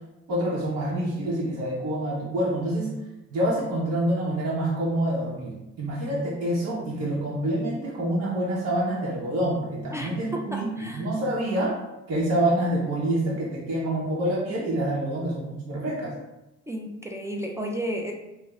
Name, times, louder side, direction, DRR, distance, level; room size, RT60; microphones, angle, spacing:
voice 1, 0.3-2.9 3.3-11.8 12.1-16.2, right 1 dB, 55° right, -5 dB, 0.8 m, -27 dB
voice 2, 9.9-11.0 16.7-18.1, equal, 10° right, 0 dB, 0.4 m, -32 dB
2.9 x 2.0 x 3.8 m, 0.96 s
supercardioid pair, 70°, 29 cm